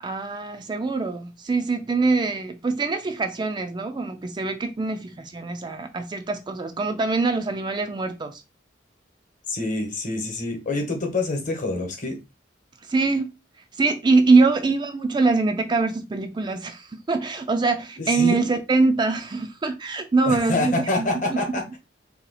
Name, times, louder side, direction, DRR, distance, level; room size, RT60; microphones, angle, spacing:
voice 1, 0.0-8.4 12.8-13.3 13.7-21.4, right 3 dB, 25° right, 0.3 m, -23 dB
voice 2, 9.5-12.1 18.1-18.4 20.2-21.8, left 2 dB, 45° left, 1.0 m, -26 dB
2.8 x 2.3 x 4.0 m
head